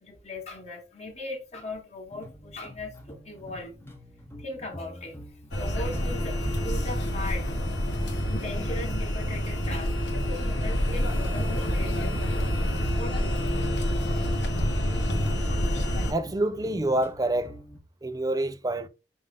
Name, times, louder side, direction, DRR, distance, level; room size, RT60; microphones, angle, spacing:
voice 1, 0.0-3.7 4.4-5.2 5.6-7.5 8.3-9.9 10.3-13.6 14.2-14.3, left 2 dB, 40° left, 1.6 m, -39 dB
sound 1, 2.1-17.8, left 1 dB, 15° left, 0.9 m, -44 dB
sound 2, 5.5-16.1, equal, 75° left, 1.1 m, -27 dB
voice 2, 16.1-17.5 18.0-18.9, right 1 dB, 20° right, 0.5 m, -27 dB
5.4 x 2.6 x 3.5 m
head